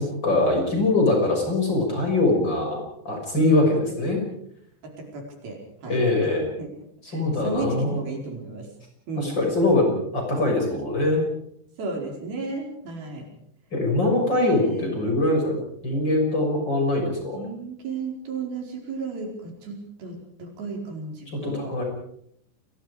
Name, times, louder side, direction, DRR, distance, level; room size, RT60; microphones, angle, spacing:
voice 1, 0.0-4.2 5.9-6.5 7.1-8.0 9.2-11.2 13.7-17.4 21.3-21.8, left 2 dB, 25° left, 1 dB, 6.6 m, -23 dB
voice 2, 4.8-6.0 6.6-6.7 7.1-8.7 9.1-9.4 11.8-13.3 14.4-14.9 17.3-21.7, right 3 dB, 65° right, 1 dB, 6.5 m, -34 dB
29.0 x 22.0 x 5.0 m, 0.72 s
omnidirectional pair, 4.8 m